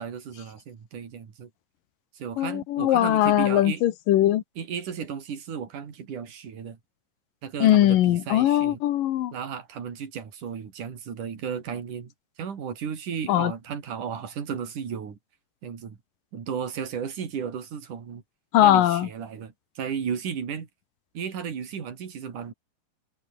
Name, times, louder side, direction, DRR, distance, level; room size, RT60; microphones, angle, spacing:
voice 1, 0.0-1.5 2.1-3.8 4.6-6.8 7.4-8.8 9.3-12.1 12.4-15.2 15.6-16.0 16.3-18.2 18.6-20.7 21.1-22.5, right 7 dB, 60° right, 4.8 m, -34 dB
voice 2, 2.4-4.4 7.6-9.3 13.3-13.5 18.5-19.1, left 13 dB, 75° left, 2.9 m, -20 dB
omnidirectional pair, 4.0 m